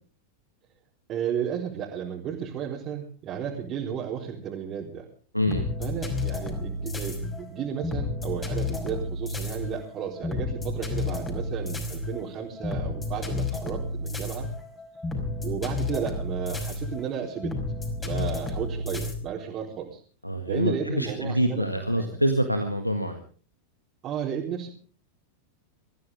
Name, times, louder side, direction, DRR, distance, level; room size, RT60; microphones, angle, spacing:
voice 1, 1.1-5.1 5.8-14.5 15.4-17.5 18.0-20.0 20.4-22.1 24.0-24.7, right 8 dB, 30° right, -3 dB, 4.0 m, -33 dB
voice 2, 5.3-5.6 18.1-18.3 20.2-23.2, equal, 90° left, 7 dB, 1.7 m, -26 dB
sound 1, 5.5-19.1, left 3 dB, 15° left, 5.3 m, -31 dB
24.0 x 15.0 x 3.6 m, 0.42 s
figure-of-eight pair, 90°, 0 cm